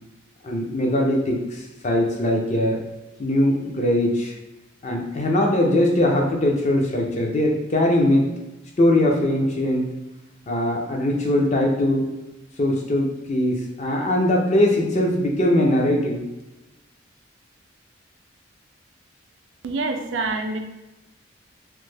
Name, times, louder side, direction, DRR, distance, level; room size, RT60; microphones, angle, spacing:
voice 1, 0.4-2.8 3.2-4.4 4.8-8.3 8.8-9.9 10.5-12.1 12.6-16.2, left 1 dB, 35° left, 0 dB, 0.5 m, -21 dB
voice 2, 19.6-20.6, right 3 dB, 65° right, 5 dB, 0.4 m, -26 dB
3.1 x 2.0 x 3.3 m, 1.0 s
head